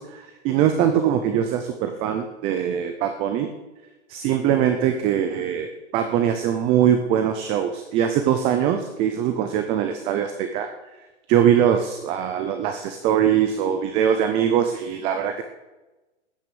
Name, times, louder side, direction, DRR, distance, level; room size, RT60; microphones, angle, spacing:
voice 1, 0.0-3.5 4.1-10.7 11.3-15.4, right 9 dB, 15° right, 7 dB, 0.5 m, -22 dB
12.0 x 9.6 x 6.8 m, 1.1 s
hypercardioid pair, 150°, 36 cm